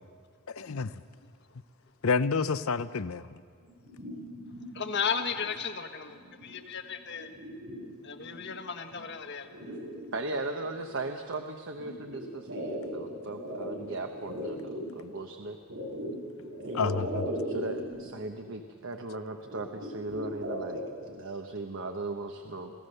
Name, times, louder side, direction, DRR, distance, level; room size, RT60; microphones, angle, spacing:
voice 1, 0.5-1.0 2.0-3.4 16.7-17.2, left 5 dB, 70° left, 0.6 m, -29 dB
sound 1, 3.6-4.8 5.2-5.6 6.1-6.5 6.9-8.5 8.9-9.0 9.4-10.6 11.8-14.9 15.7-18.1 18.4-18.5 18.8-18.9 19.5-20.9, equal, 75° right, 6.6 m, -38 dB
voice 2, 4.7-6.2 6.4-7.3 8.0-9.5, left 6 dB, 50° left, 1.4 m, -34 dB
voice 3, 10.1-15.6 16.6-22.7, right 2 dB, 60° right, 1.0 m, -37 dB
28.0 x 16.5 x 6.7 m
head